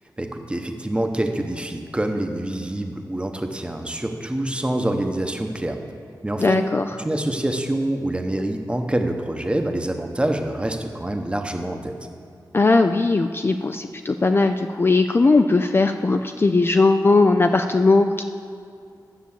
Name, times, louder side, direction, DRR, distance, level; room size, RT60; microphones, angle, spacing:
voice 1, 0.2-5.8 6.2-6.6 7.0-12.0, right 1 dB, 15° right, 5 dB, 0.9 m, -26 dB
voice 2, 6.4-6.9 12.5-18.2, left 3 dB, 30° left, 6 dB, 0.4 m, -18 dB
9.8 x 7.3 x 7.2 m, 2.4 s
wide cardioid pair, 110°, 7 cm